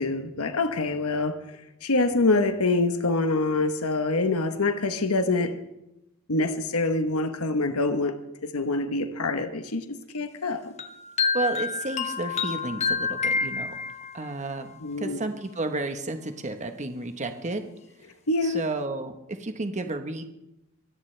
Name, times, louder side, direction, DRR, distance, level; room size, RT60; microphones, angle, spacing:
voice 1, 0.0-5.6 6.3-10.7 14.8-15.3 18.3-18.6, left 2 dB, 75° left, 1.1 m, -26 dB
sound 1, 10.8-14.3, left 5 dB, 30° left, 1.0 m, -28 dB
voice 2, 11.3-13.7 14.1-17.6 18.4-20.2, right 2 dB, 35° right, 1.2 m, -32 dB
24.5 x 17.0 x 3.4 m
head